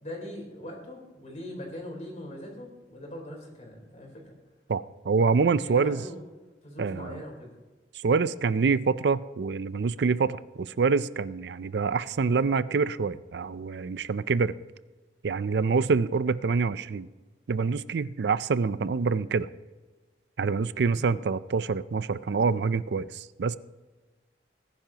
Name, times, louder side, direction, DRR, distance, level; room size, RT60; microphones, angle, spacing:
voice 1, 0.0-4.3 5.6-6.2 6.6-7.5 20.9-21.1, left 1 dB, 40° left, 0 dB, 3.7 m, -41 dB
voice 2, 4.7-6.0 6.8-7.2 8.0-14.5 15.2-17.1 17.5-19.5 20.4-23.6, right 4 dB, 75° right, 16 dB, 0.4 m, -26 dB
19.5 x 10.5 x 2.9 m, 1.3 s
head